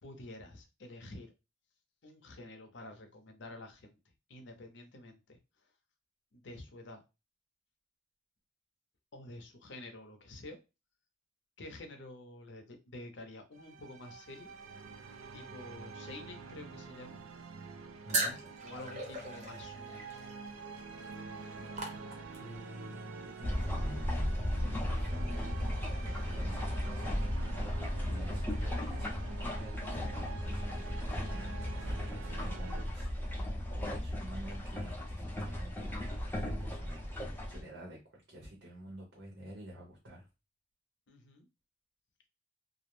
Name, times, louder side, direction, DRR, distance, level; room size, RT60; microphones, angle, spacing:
voice 1, 0.0-1.3 2.0-4.0 4.3-5.7 6.3-7.0 9.1-10.6 11.6-14.5 15.3-17.2 18.6-20.1 41.1-41.5, left 2 dB, 65° left, 5 dB, 0.6 m, -49 dB
sound 1, 13.5-32.8, right 4 dB, 85° right, 0.4 m, -47 dB
voice 2, 18.0-18.4 22.4-27.8 28.1-33.1 33.8-40.3, equal, 70° right, -1 dB, 0.8 m, -50 dB
sound 2, 18.1-22.6, right 2 dB, 35° right, 0.7 m, -38 dB
sound 3, 23.4-37.6, left 1 dB, 10° left, 0.5 m, -35 dB
2.4 x 2.0 x 3.0 m, 0.27 s
head